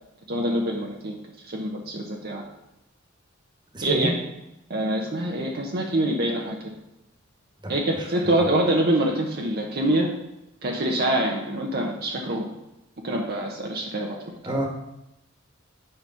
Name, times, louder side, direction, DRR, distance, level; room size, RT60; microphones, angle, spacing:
voice 1, 0.3-1.2 1.5-2.4 3.8-4.1 4.7-6.7 7.7-10.1 10.6-12.5 13.0-14.3, right 1 dB, 50° right, 0 dB, 1.0 m, -25 dB
voice 2, 3.7-4.1 7.9-8.1 14.4-14.7, right 1 dB, 25° right, 1 dB, 1.6 m, -27 dB
8.9 x 5.2 x 5.8 m, 0.90 s
head